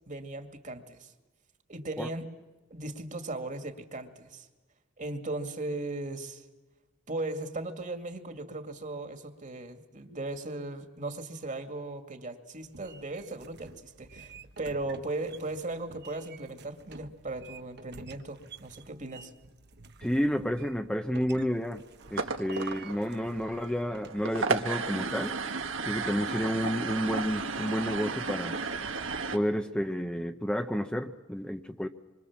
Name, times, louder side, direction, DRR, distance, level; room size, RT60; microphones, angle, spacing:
voice 1, 0.1-1.1 1.7-2.3 2.7-4.5 5.0-6.5 7.1-19.3, right 2 dB, 40° right, 7 dB, 2.3 m, -37 dB
sound 1, 12.6-25.4, right 4 dB, 55° right, 1.2 m, -52 dB
voice 2, 20.0-21.8 22.1-25.4 25.8-28.6 29.3-31.9, equal, 5° left, 5 dB, 0.9 m, -30 dB
sound 2, 22.0-29.4, right 4 dB, 80° right, 1.9 m, -34 dB
26.5 x 25.0 x 7.4 m, 1.1 s
head